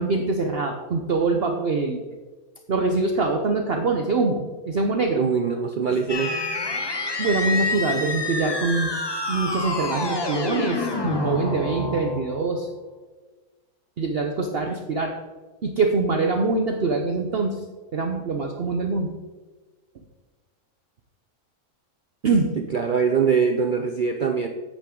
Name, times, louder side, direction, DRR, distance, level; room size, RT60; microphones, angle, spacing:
voice 1, 0.0-2.0 2.7-5.3 7.2-8.9 9.3-12.7 14.0-15.1 15.6-17.6 17.9-19.1 22.2-22.5, right 3 dB, 50° right, 3 dB, 0.8 m, -24 dB
voice 2, 5.2-6.3 22.7-24.5, right 6 dB, 70° right, 5 dB, 0.4 m, -22 dB
sound 1, 6.1-12.6, left 2 dB, 25° left, 0.5 m, -28 dB
8.6 x 8.3 x 3.8 m, 1.3 s
omnidirectional pair, 1.6 m